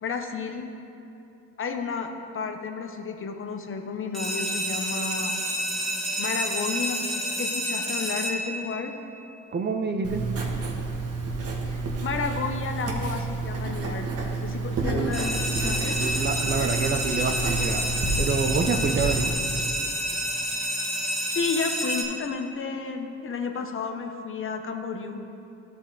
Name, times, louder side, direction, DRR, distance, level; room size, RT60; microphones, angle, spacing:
voice 1, 0.0-0.7 1.6-5.4 6.2-8.9 11.6-16.0 21.3-25.2, left 5 dB, 45° left, 5 dB, 0.7 m, -32 dB
sound 1, 4.1-9.0 15.1-22.0, equal, ahead, 1.7 m, -29 dB
voice 2, 9.5-10.2 14.8-15.1 16.0-17.9 18.2-19.3, right 4 dB, 35° right, 6 dB, 0.5 m, -27 dB
Writing, 10.0-19.3, right 3 dB, 55° right, 1.2 m, -29 dB
12.0 x 4.2 x 3.8 m, 2.8 s
cardioid pair, 90°, 30 cm